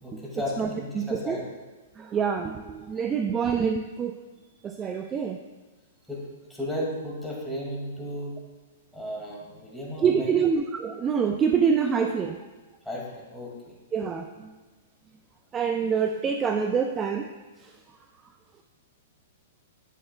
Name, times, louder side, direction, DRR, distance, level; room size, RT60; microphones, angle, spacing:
voice 1, 0.0-1.5 6.1-6.2 6.5-8.4 8.9-10.3 12.9-13.5, left 1 dB, 5° left, -4 dB, 2.0 m, -34 dB
voice 2, 1.0-1.4 2.0-4.1 4.6-5.4 10.0-12.4 13.9-14.5 15.5-17.3, right 6 dB, 20° right, 5 dB, 0.4 m, -26 dB
9.2 x 7.4 x 2.2 m, 1.2 s
hypercardioid pair, 125°, 0 cm